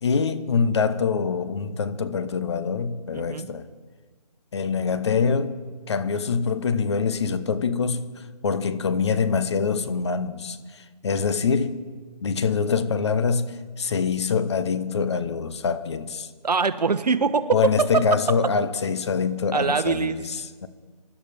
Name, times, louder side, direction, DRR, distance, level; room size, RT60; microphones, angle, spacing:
voice 1, 0.0-3.7 4.5-5.6 5.9-8.1 8.4-11.8 12.2-16.3 17.5-20.7, left 5 dB, 40° left, 0.9 m, -25 dB
voice 2, 3.1-3.5 16.4-18.1 19.5-20.2, right 5 dB, 75° right, 1.0 m, -23 dB
26.5 x 12.5 x 3.5 m
figure-of-eight pair, 160°, 21 cm